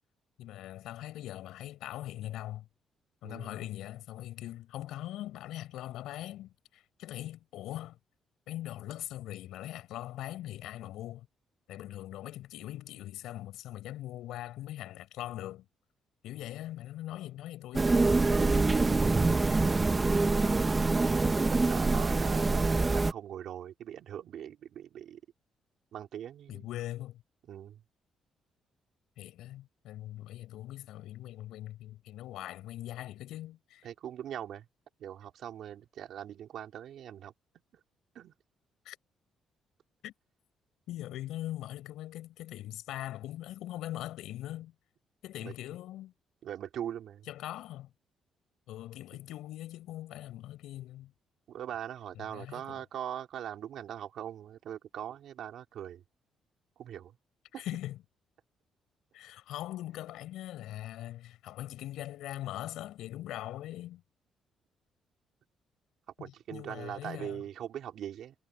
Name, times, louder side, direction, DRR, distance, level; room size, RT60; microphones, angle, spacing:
voice 1, 0.4-2.7 3.2-8.0 8.5-11.3 11.7-15.7 16.2-18.1 18.4-19.0 26.5-27.2 29.2-33.9 38.8-39.0 40.0-40.1 40.9-44.7 45.2-46.1 47.3-47.9 48.7-51.1 52.3-52.8 57.5-58.0 59.1-64.0 66.2-67.4, left 14 dB, 85° left, 7.5 m, -41 dB
sound 1, 17.7-23.1, right 3 dB, 25° right, 1.0 m, -25 dB
voice 2, 21.6-25.2 25.9-26.7 27.5-27.8 33.8-34.6 35.0-37.3 38.1-38.3 45.4-45.5 46.4-47.3 51.5-56.0 56.8-57.1 57.5-57.6 66.2-68.3, right 10 dB, 70° right, 4.0 m, -41 dB
cardioid pair, 90°, 0 cm